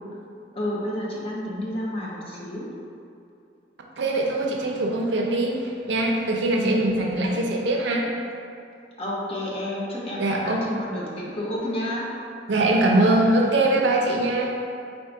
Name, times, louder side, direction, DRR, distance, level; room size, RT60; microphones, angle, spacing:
voice 1, 0.5-2.7 6.6-6.8 7.1-7.4 9.0-12.1, left 1 dB, 35° left, -5 dB, 0.8 m, -30 dB
voice 2, 4.0-8.1 10.2-10.6 12.5-14.6, right 2 dB, 75° right, 0 dB, 0.5 m, -22 dB
3.6 x 2.5 x 4.6 m, 2.6 s
head